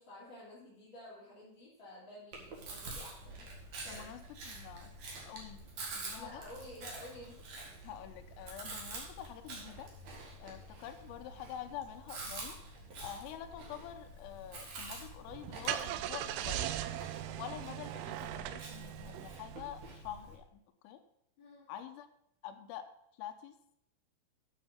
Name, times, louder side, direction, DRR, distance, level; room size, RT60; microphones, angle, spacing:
voice 1, 0.0-4.0 6.1-7.8 21.4-21.7, left 1 dB, 30° left, -10 dB, 2.8 m, -52 dB
Chewing mastication, 2.3-20.4, right 2 dB, 55° right, 2.0 m, -47 dB
voice 2, 3.9-4.9 5.2-5.6 6.0-6.4 7.8-9.9 10.4-12.6 13.0-16.7 17.3-21.0 21.7-22.1 22.4-22.9 23.2-23.5, left 10 dB, 80° left, 7 dB, 3.4 m, -46 dB
Car / Engine starting, 15.3-19.9, right 13 dB, 90° right, 2.6 m, -39 dB
10.0 x 6.3 x 5.7 m, 0.74 s
omnidirectional pair, 6.0 m